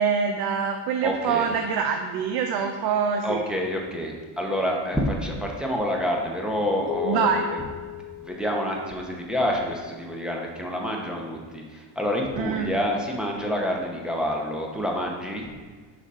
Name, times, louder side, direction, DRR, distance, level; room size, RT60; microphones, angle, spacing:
voice 1, 0.0-3.4 7.0-7.5 12.4-12.7, right 6 dB, 60° right, 4 dB, 0.6 m, -25 dB
voice 2, 1.0-1.5 3.2-15.4, equal, ahead, -1 dB, 0.7 m, -28 dB
sound 1, 6.9-9.4, left 13 dB, 40° left, 0.6 m, -35 dB
5.9 x 4.2 x 5.5 m, 1.5 s
cardioid pair, 140°, 44 cm